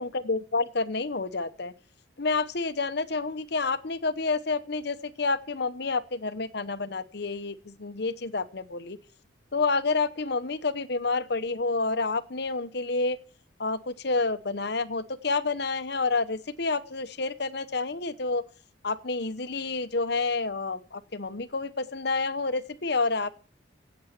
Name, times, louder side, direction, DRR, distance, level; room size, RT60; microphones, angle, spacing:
voice 1, 0.0-1.7 2.2-9.0 9.5-13.2 13.6-18.4 18.8-23.4, left 3 dB, 55° left, 12 dB, 1.0 m, -29 dB
17.0 x 7.9 x 5.9 m, 0.42 s
head